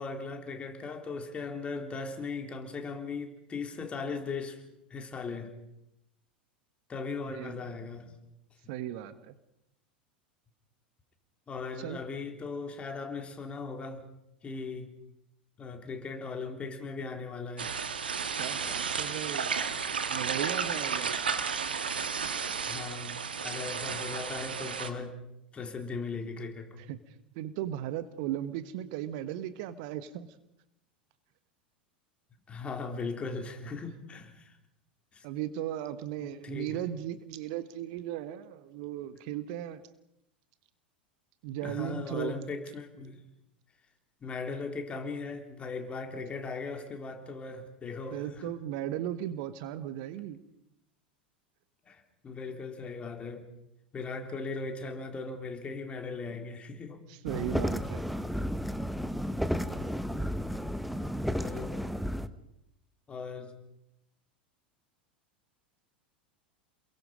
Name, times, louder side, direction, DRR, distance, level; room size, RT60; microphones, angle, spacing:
voice 1, 0.0-4.6 4.9-5.5 6.9-8.1 11.5-14.0 14.4-14.9 15.6-17.8 18.6-18.7 22.7-25.2 25.5-26.9 32.5-34.5 35.1-35.2 36.2-36.8 41.6-43.2 44.2-48.5 51.9-53.4 53.9-57.0 61.3-61.8 63.1-63.5, left 4 dB, 20° left, 3.7 m, -38 dB
voice 2, 8.7-9.3 11.8-12.0 18.3-19.5 20.1-21.1 26.8-27.0 27.3-30.3 35.2-39.8 41.4-42.4 48.1-50.4 57.1-58.3, right 12 dB, 50° right, 1.3 m, -36 dB
sound 1, 17.6-24.9, right 6 dB, 75° right, 1.8 m, -33 dB
sound 2, 57.3-62.3, equal, ahead, 1.1 m, -32 dB
28.5 x 22.5 x 5.3 m
figure-of-eight pair, 85°, 5 cm